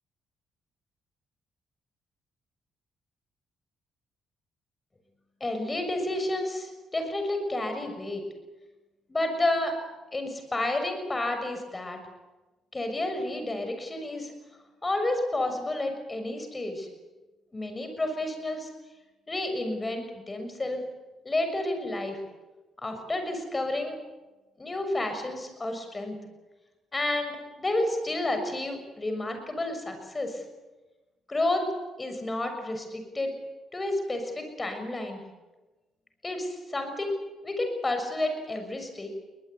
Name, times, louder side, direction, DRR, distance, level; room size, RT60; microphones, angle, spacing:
voice 1, 5.4-8.2 9.1-9.7 10.1-12.0 12.7-14.3 14.8-16.9 17.5-18.7 19.3-20.8 21.2-22.2 22.8-24.0 24.6-26.2 26.9-30.4 31.3-31.7 32.0-33.3 33.7-35.2 36.2-37.2 37.4-39.1, left 2 dB, 20° left, 6 dB, 6.5 m, -30 dB
22.0 x 20.0 x 9.6 m, 1.1 s
cardioid pair, 90°, 0 cm